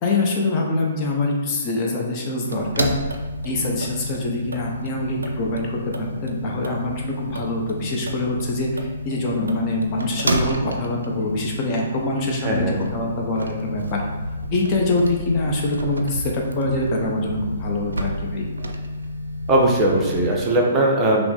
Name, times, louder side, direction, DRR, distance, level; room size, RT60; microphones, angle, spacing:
voice 1, 0.0-3.0 3.4-14.0 14.5-18.5, left 2 dB, 30° left, -2 dB, 0.7 m, -24 dB
sound 1, 2.4-20.4, equal, 70° right, 0.4 m, -30 dB
voice 2, 12.4-12.8 19.5-21.2, right 1 dB, 15° right, -2 dB, 0.7 m, -19 dB
5.8 x 2.0 x 3.8 m, 1.3 s
figure-of-eight pair, 125°, 0 cm